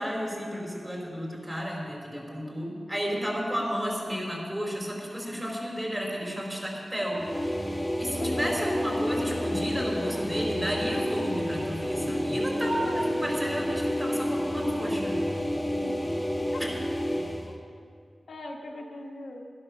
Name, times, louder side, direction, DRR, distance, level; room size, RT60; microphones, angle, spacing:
voice 1, 0.0-7.2 8.0-15.2 16.6-16.7, equal, 20° right, -1 dB, 4.2 m, -32 dB
sound 1, 7.1-17.5, equal, 5° left, 1.7 m, -30 dB
voice 2, 8.1-8.7 9.2-9.4 9.7-10.2 12.5-13.3 15.8-16.0 16.5-16.6 18.3-19.5, left 1 dB, 80° left, 0 dB, 1.4 m, -38 dB
12.5 x 11.0 x 6.5 m, 2.3 s
cardioid pair, 60°, 0 cm